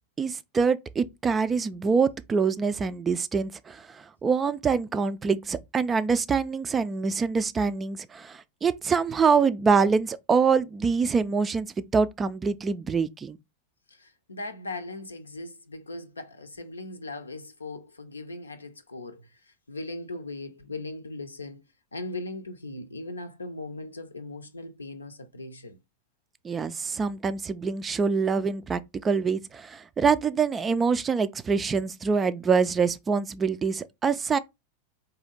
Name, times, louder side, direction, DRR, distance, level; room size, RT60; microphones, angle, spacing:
voice 1, 0.2-11.7 11.9-13.4 26.4-34.4, right 5 dB, 20° right, 0.3 m, -25 dB
voice 2, 13.9-21.6 21.9-25.8, left 2 dB, 75° left, 0.6 m, -39 dB
4.1 x 2.7 x 3.9 m
figure-of-eight pair, 90°, 0 cm